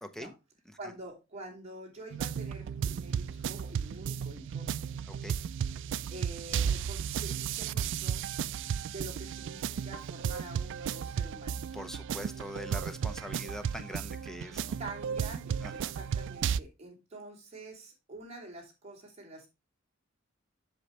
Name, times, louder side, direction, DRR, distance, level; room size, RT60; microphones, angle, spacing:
voice 1, 0.0-0.3 5.1-5.4 11.7-14.8 15.6-15.9, equal, ahead, 9 dB, 0.7 m, -43 dB
voice 2, 0.8-4.7 6.1-8.3 8.9-11.6 14.8-19.5, right 2 dB, 35° right, -1 dB, 2.8 m, -46 dB
sound 1, 2.1-16.6, right 8 dB, 60° right, 0.3 m, -34 dB
7.9 x 6.6 x 3.2 m, 0.25 s
head